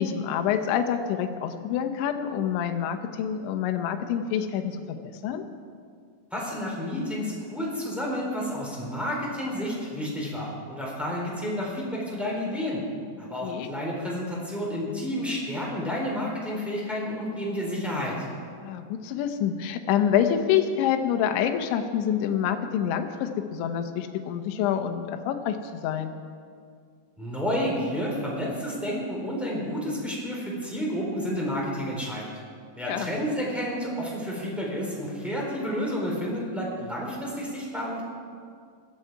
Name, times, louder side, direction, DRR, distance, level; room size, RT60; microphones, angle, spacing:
voice 1, 0.0-5.4 13.4-13.7 18.6-26.2 32.8-33.1, left 9 dB, 80° left, 6 dB, 3.2 m, -27 dB
voice 2, 6.3-12.8 13.2-18.1 27.2-32.2 32.7-38.0, equal, ahead, -4 dB, 2.9 m, -30 dB
20.5 x 14.0 x 4.7 m, 2.2 s
omnidirectional pair, 5.5 m